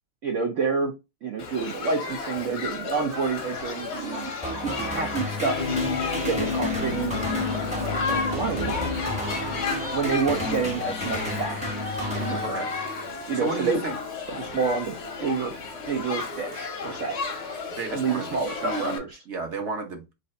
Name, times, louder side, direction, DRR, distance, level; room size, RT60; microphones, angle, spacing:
voice 1, 0.2-0.9 1.2-4.3 4.6-5.7 6.3-7.2 7.8-8.8 9.9-11.8 12.1-12.6 13.3-13.8 14.4-14.9 15.2-15.5 15.9-17.2 17.9-19.2, right 5 dB, 85° right, 0.6 m, -28 dB
Shout / Human group actions, 1.4-19.0, left 4 dB, 55° left, 0.8 m, -33 dB
sound 1, 4.4-13.0, left 1 dB, 10° right, 0.5 m, -32 dB
sound 2, 5.5-11.6 12.0-12.1, left 5 dB, 70° left, 0.4 m, -33 dB
voice 2, 13.3-13.9 17.7-20.1, right 3 dB, 55° right, 0.8 m, -33 dB
3.2 x 2.7 x 4.1 m
omnidirectional pair, 2.1 m